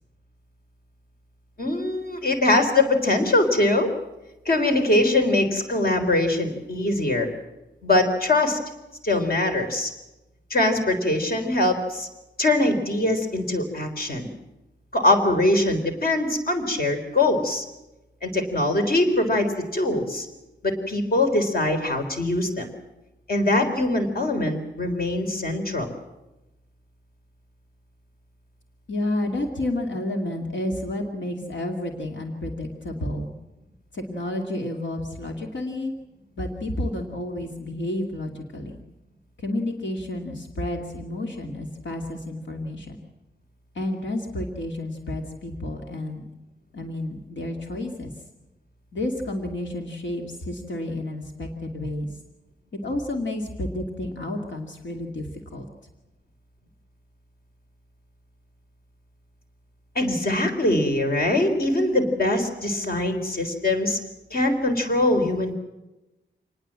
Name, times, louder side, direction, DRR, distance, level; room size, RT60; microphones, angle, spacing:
voice 1, 1.6-3.9 4.5-7.3 7.8-8.6 9.0-9.9 10.5-12.1 12.4-14.3 14.9-17.6 18.2-20.3 20.6-22.7 23.3-25.9 60.0-64.0 64.3-65.5, left 2 dB, 55° left, 5 dB, 3.9 m, -22 dB
voice 2, 28.9-33.3 33.9-35.9 36.4-38.8 39.4-43.0 43.7-46.2 46.7-48.1 48.9-52.2 52.7-55.6, left 1 dB, 80° left, 2 dB, 2.6 m, -30 dB
27.0 x 20.0 x 7.6 m, 1.0 s
wide cardioid pair, 160°, 19 cm